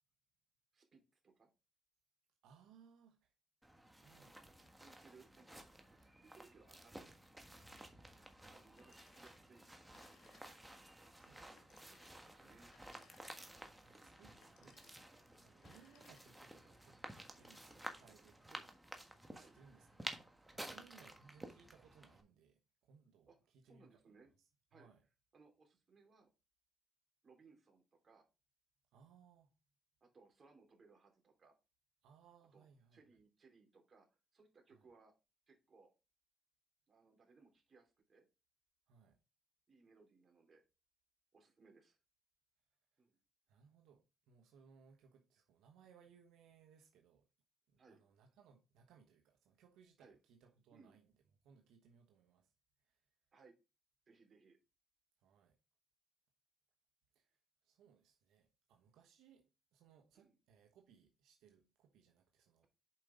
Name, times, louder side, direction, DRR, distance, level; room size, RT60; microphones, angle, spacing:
voice 1, 0.7-1.5 4.4-5.6 5.9-7.1 8.5-9.7 11.5-11.6 11.9-12.7 13.9-14.3 18.4-18.7 19.3-19.6 20.6-20.8 23.3-23.4 23.6-24.3 24.7-24.9 25.3-26.3 27.2-28.2 30.0-31.5 32.5-32.7 32.9-34.1 34.3-35.1 35.5-35.9 36.9-38.3 39.7-40.6 41.3-42.0 43.0-43.2 47.8-48.0 50.0-50.2 50.7-51.0 53.3-53.5 54.1-54.6 60.1-60.3, right 4 dB, 40° right, 3.1 m, -66 dB
voice 2, 2.4-3.3 4.0-4.4 11.2-11.9 13.6-18.7 19.3-20.2 20.5-25.0 28.9-29.5 32.0-33.0 34.7-34.9 38.9-39.2 43.5-47.3 47.7-51.0 51.4-52.5 52.8-53.0 55.2-55.6 57.1-57.4 57.6-62.6, right 6 dB, 90° right, 1.1 m, -67 dB
sound 1, 3.6-22.2, right 1 dB, 10° right, 1.4 m, -54 dB
Telephone, 8.8-9.5 9.8-10.9 11.6-13.7 14.3-15.1 15.5-16.6, left 7 dB, 80° left, 1.6 m, -70 dB
7.4 x 5.2 x 3.8 m
cardioid pair, 90°, 0 cm